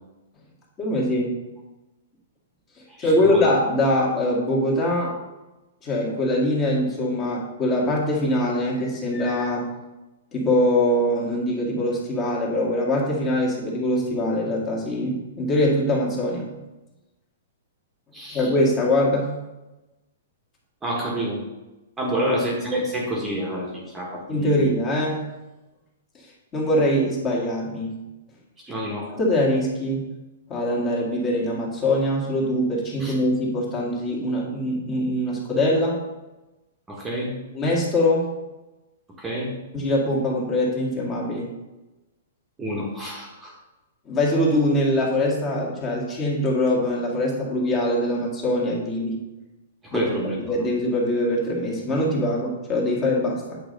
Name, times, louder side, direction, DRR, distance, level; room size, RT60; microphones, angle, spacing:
voice 1, 0.8-1.4 3.0-5.2 5.8-9.7 10.3-16.5 18.3-19.3 22.2-22.3 24.3-25.2 26.5-27.9 29.1-30.1 30.5-36.0 37.5-38.3 39.7-41.5 44.1-49.2 49.9-50.1 50.4-53.6, left 1 dB, 20° left, -3 dB, 1.9 m, -23 dB
voice 2, 3.0-3.5 18.1-18.5 20.8-21.4 22.0-24.6 28.7-29.1 33.0-33.1 36.9-37.3 39.2-39.5 42.6-43.5 49.8-50.4, right 1 dB, 10° right, -3 dB, 1.5 m, -28 dB
8.7 x 4.0 x 5.3 m, 1.0 s
hypercardioid pair, 150°, 0 cm